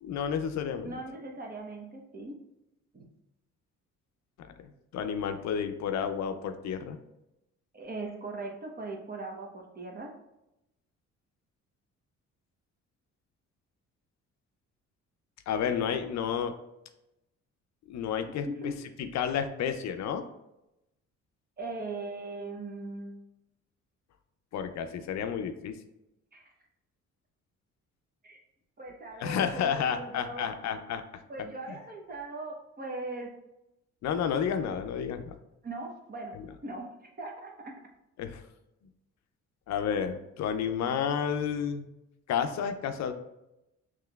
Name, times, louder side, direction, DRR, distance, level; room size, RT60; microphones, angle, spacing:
voice 1, 0.0-1.0 4.4-7.0 15.5-16.6 17.9-18.7 19.0-20.3 24.5-25.8 29.2-31.0 34.0-35.3 36.3-36.4 38.2-38.4 39.7-41.9 42.3-43.1, left 7 dB, 65° left, 8 dB, 0.5 m, -31 dB
voice 2, 0.8-2.4 2.9-3.1 7.7-10.1 18.4-18.8 21.6-23.2 26.3-26.4 28.2-28.4 28.8-30.5 31.3-33.3 35.6-36.4 36.6-36.9 37.2-37.8, right 2 dB, 30° right, 1 dB, 0.9 m, -39 dB
5.7 x 3.0 x 2.3 m, 0.91 s
cardioid pair, 90°, 30 cm